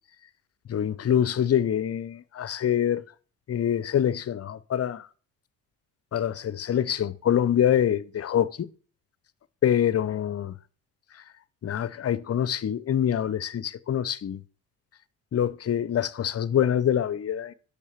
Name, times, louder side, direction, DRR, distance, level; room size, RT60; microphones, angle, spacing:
voice 1, 0.7-3.0 3.5-5.1 6.1-8.7 9.6-10.5 11.6-14.4 15.3-17.5, left 9 dB, 35° left, 0.6 m, -25 dB
6.5 x 5.4 x 6.6 m
supercardioid pair, 65°, 41 cm